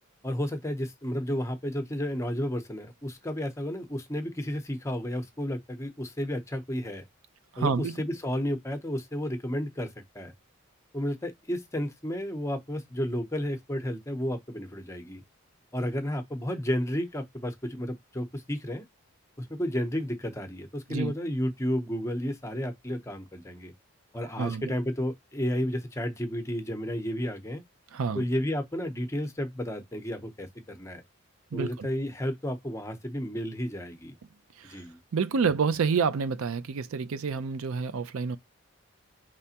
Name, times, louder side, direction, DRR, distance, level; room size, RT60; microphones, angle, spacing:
voice 1, 0.2-7.0 7.6-10.3 10.9-15.2 15.7-18.8 19.4-23.7 24.1-27.6 28.1-31.0 31.5-34.1 34.7-35.0, equal, 15° left, 0.7 m, -32 dB
voice 2, 7.5-8.0 20.9-21.1 24.4-24.7 27.9-28.2 31.5-31.9 34.6-34.8 35.1-38.4, right 5 dB, 70° right, 0.4 m, -28 dB
4.9 x 3.4 x 2.8 m
head